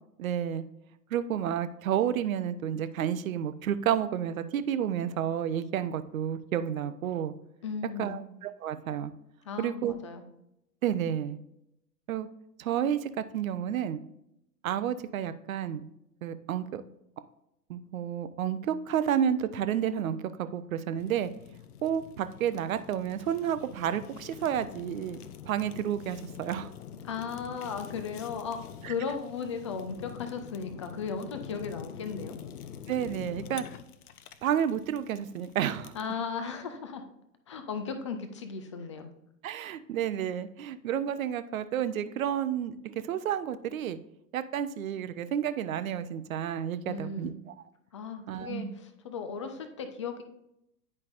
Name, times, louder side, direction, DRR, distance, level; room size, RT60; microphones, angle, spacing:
voice 1, 0.2-0.6 1.1-7.3 8.0-9.1 9.6-9.9 10.8-11.4 12.1-12.3 12.6-14.0 14.6-15.9 16.2-16.8 17.7-21.3 21.8-25.2 25.4-26.7 28.8-28.9 32.9-33.6 34.4-35.9 39.4-44.0 44.3-47.3 48.3-48.7, right 9 dB, 55° right, 12 dB, 0.7 m, -30 dB
voice 2, 7.6-8.2 9.5-10.2 27.0-32.4 35.9-37.0 37.5-39.1 46.9-47.4 47.9-50.2, left 5 dB, 20° left, 8 dB, 0.3 m, -36 dB
Fire, 21.0-36.1, left 9 dB, 65° left, 0.7 m, -46 dB
9.8 x 5.3 x 2.5 m, 0.81 s
figure-of-eight pair, 100°, 49 cm